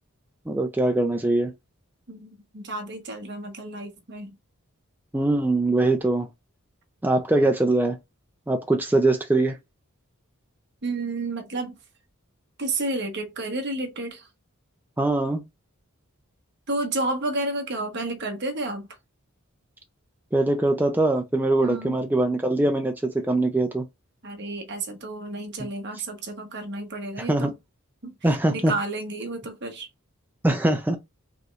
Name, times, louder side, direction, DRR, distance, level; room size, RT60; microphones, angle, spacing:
voice 1, 0.5-1.5 5.1-6.3 7.0-8.0 8.5-9.6 15.0-15.4 20.3-23.8 27.3-27.5 28.2-28.7 30.4-31.0, right 2 dB, 10° right, 0.4 m, -22 dB
voice 2, 2.1-4.4 10.8-11.8 12.6-14.3 16.7-18.9 21.6-22.0 24.2-27.5 28.0-29.9, right 2 dB, 55° right, 1.1 m, -31 dB
4.9 x 3.1 x 2.4 m
head